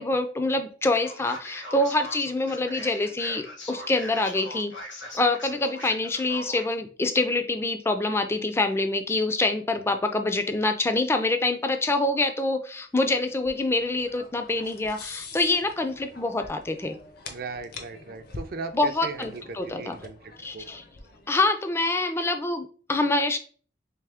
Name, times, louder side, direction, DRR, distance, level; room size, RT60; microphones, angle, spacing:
voice 1, 0.0-4.7 5.1-17.0 18.7-20.0 20.4-20.8 21.3-23.4, left 2 dB, 15° left, 7 dB, 0.3 m, -26 dB
Male speech man speaking, 0.9-6.7, left 1 dB, 80° left, 1.3 m, -41 dB
sound 1, 13.0-21.5, left 3 dB, 55° left, 0.6 m, -45 dB
voice 2, 17.3-20.7, right 4 dB, 55° right, 8 dB, 0.4 m, -38 dB
3.4 x 3.0 x 3.4 m, 0.41 s
head